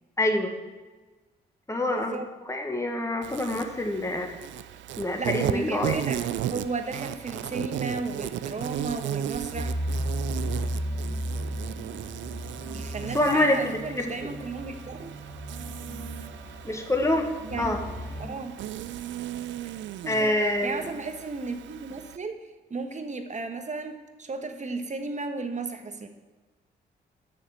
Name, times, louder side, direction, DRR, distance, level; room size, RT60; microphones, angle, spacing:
voice 1, 0.2-0.5 1.7-2.2 2.5-4.3 5.0-6.0 13.1-14.1 16.6-17.3 17.6-17.8 20.1-20.9, left 1 dB, 15° left, 3 dB, 1.5 m, -26 dB
voice 2, 1.9-2.3 5.2-6.2 6.5-9.7 12.7-15.2 17.5-17.7 18.2-18.6 20.0-26.1, right 3 dB, 35° right, 6 dB, 1.3 m, -34 dB
Insect, 3.2-22.2, right 11 dB, 70° right, 0.4 m, -36 dB
sound 1, 9.5-18.2, equal, 90° left, 2.8 m, -35 dB
6.8 x 6.6 x 7.3 m, 1.2 s
supercardioid pair, 50°, 20 cm